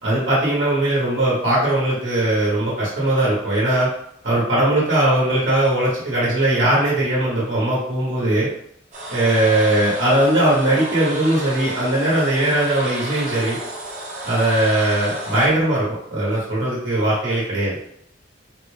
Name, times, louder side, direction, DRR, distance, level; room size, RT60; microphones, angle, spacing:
voice 1, 0.0-3.9 4.2-8.5 9.1-13.6 14.2-17.8, right 1 dB, 80° right, -7 dB, 1.2 m, -19 dB
sound 1, 8.9-15.5, right 1 dB, 40° right, 0.7 m, -32 dB
3.7 x 2.3 x 3.2 m, 0.72 s
head